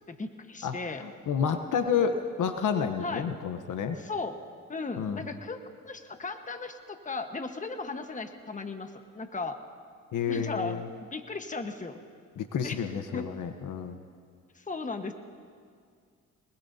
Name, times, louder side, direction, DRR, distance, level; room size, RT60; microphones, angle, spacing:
voice 1, 0.1-1.0 3.0-3.2 4.0-4.4 4.7-5.6 5.8-9.6 10.3-10.8 11.1-12.0 12.6-12.8 13.1-13.2 14.5-15.1, left 3 dB, 25° left, 6 dB, 1.3 m, -36 dB
voice 2, 0.6-4.0 5.0-5.3 10.1-10.9 12.4-14.0, left 7 dB, 75° left, 8 dB, 1.0 m, -30 dB
25.0 x 20.5 x 2.8 m, 2.2 s
cardioid pair, 75°, 32 cm